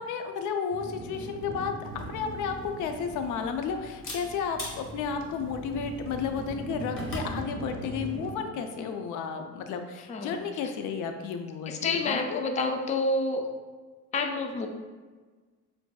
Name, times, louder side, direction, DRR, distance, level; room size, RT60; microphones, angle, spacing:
voice 1, 0.0-12.4, left 6 dB, 90° left, 6 dB, 0.5 m, -33 dB
sound 1, 0.7-8.4, right 2 dB, 45° right, 0.6 m, -40 dB
Camera, 1.8-7.4, left 1 dB, 45° left, 1.1 m, -43 dB
voice 2, 11.7-13.5 14.1-14.7, left 3 dB, 25° left, 4 dB, 0.4 m, -28 dB
6.9 x 2.6 x 2.3 m, 1.4 s
cardioid pair, 130°, 30 cm